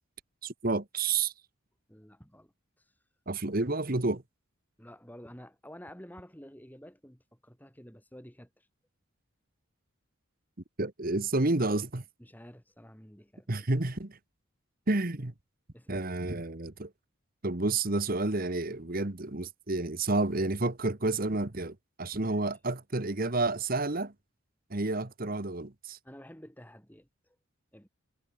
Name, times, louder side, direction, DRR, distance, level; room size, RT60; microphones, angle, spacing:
voice 1, 0.4-1.3 3.3-4.2 10.8-12.0 13.5-14.2 14.9-15.3 15.9-16.9 17.4-24.1 24.7-26.0, right 2 dB, 45° right, 1.4 m, -30 dB
voice 2, 1.9-2.8 4.8-8.7 12.2-13.7 15.7-16.1 22.2-22.4 24.7-24.8 26.0-27.4 27.7-27.9, equal, 10° left, 4.7 m, -51 dB
head